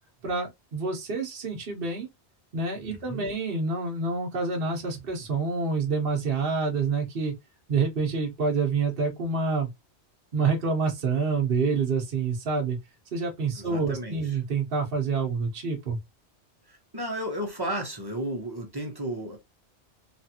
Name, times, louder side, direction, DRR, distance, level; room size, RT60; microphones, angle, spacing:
voice 1, 0.2-2.1 2.5-7.3 7.7-9.7 10.3-12.8 13.1-16.0, right 4 dB, 55° right, 1.0 m, -27 dB
voice 2, 2.9-3.3 13.6-14.4 16.7-19.4, right 1 dB, 25° right, 0.8 m, -33 dB
3.2 x 2.4 x 2.7 m
omnidirectional pair, 1.2 m